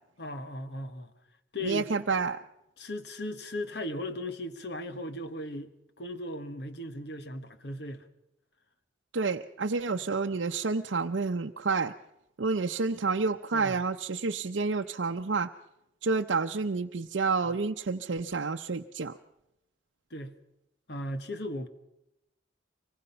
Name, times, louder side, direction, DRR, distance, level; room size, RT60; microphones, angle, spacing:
voice 1, 0.2-1.1 1.5-1.9 2.8-5.7 6.0-8.0 13.5-13.8 20.1-20.3 20.9-21.7, left 1 dB, 60° left, 9 dB, 1.4 m, -37 dB
voice 2, 1.6-2.4 9.1-11.9 12.4-15.5 16.0-19.2, right 4 dB, 80° right, 3 dB, 0.7 m, -29 dB
24.5 x 20.5 x 5.6 m, 0.87 s
head